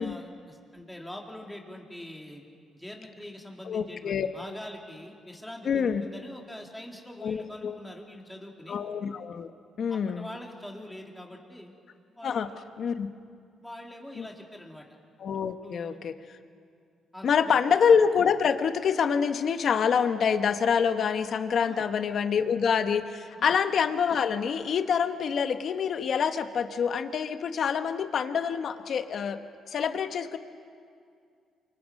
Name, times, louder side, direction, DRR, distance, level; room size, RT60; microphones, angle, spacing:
voice 1, 0.0-2.4 2.7-8.8 9.9-11.7 12.2-12.6 13.6-14.9 15.5-16.0 17.1-17.5 21.6-21.9 23.3-23.5, left 1 dB, 5° left, 0 dB, 3.6 m, -44 dB
voice 2, 3.6-4.3 5.6-6.0 7.2-7.8 8.7-9.5 9.8-10.3 12.2-12.5 12.8-13.1 14.2-14.3 15.2-16.1 17.2-29.4 29.7-30.4, left 6 dB, 60° left, 9 dB, 1.2 m, -26 dB
28.5 x 25.5 x 5.5 m, 2.3 s
cardioid pair, 90°, 0 cm